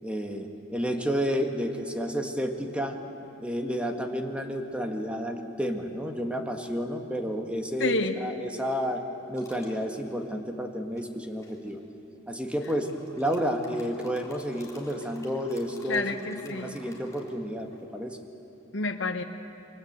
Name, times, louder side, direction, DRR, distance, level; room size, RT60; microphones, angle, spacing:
voice 1, 0.0-3.0 3.4-9.0 9.3-11.8 12.3-12.9 13.2-16.1 16.4-18.2, equal, 5° right, 4 dB, 1.8 m, -31 dB
voice 2, 7.8-8.2 15.9-16.8 18.7-19.2, left 3 dB, 70° left, 5 dB, 1.4 m, -29 dB
sound 1, 9.3-9.8 11.0-11.7 12.5-17.8, left 2 dB, 15° left, 3.6 m, -52 dB
28.5 x 24.0 x 8.2 m, 2.8 s
head